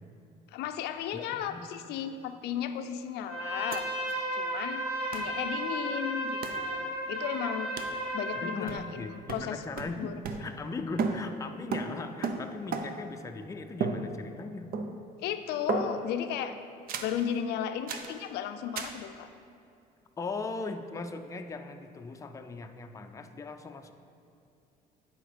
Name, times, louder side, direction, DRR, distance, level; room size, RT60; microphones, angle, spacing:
voice 1, 0.5-3.9 4.3-7.7 8.1-9.6 10.0-10.1 15.2-16.6 17.0-19.3, left 9 dB, 80° left, 9 dB, 0.4 m, -35 dB
voice 2, 1.1-1.7 8.3-10.1 10.4-14.7 20.2-23.9, left 3 dB, 20° left, 6 dB, 0.4 m, -39 dB
Trumpet, 3.2-8.7, right 1 dB, 85° right, 1.6 m, -34 dB
sound 1, 3.7-3.8 4.1-4.2 5.1-5.3 6.4-6.7 7.8-8.0 8.7-9.0 9.3-10.7 11.0-13.2 13.8-14.5 14.7-15.2 15.7-16.2 16.9-17.2 17.9-18.2 18.8-19.0, right 4 dB, 60° right, 0.6 m, -35 dB
10.0 x 4.5 x 5.0 m, 2.6 s
cardioid pair, 110°, 17 cm